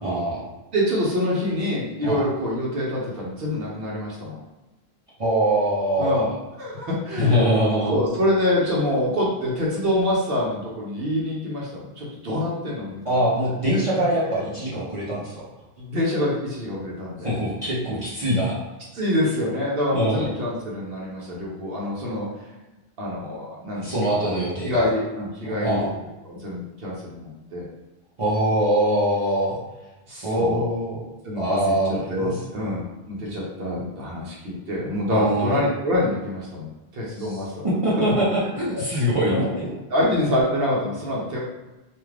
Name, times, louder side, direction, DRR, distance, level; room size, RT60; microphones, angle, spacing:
voice 1, 0.0-0.4 2.0-2.2 5.2-6.3 7.2-7.9 13.0-15.4 17.2-18.6 19.9-20.2 23.8-24.8 25.4-25.9 28.2-29.6 30.1-31.0 31.3-32.3 35.1-35.6 37.2-37.4 37.6-39.7, right 1 dB, 35° right, -9 dB, 0.6 m, -23 dB
voice 2, 0.7-4.4 6.0-6.3 6.6-7.6 7.9-13.2 13.9-14.0 15.8-17.3 18.9-22.3 23.0-25.9 26.2-27.6 30.1-30.6 31.2-36.7 36.9-37.6 38.0-38.1 38.7-39.0 39.3-39.5 39.9-41.4, left 1 dB, 70° right, -5 dB, 0.9 m, -26 dB
2.4 x 2.4 x 3.2 m, 1.1 s
omnidirectional pair, 1.0 m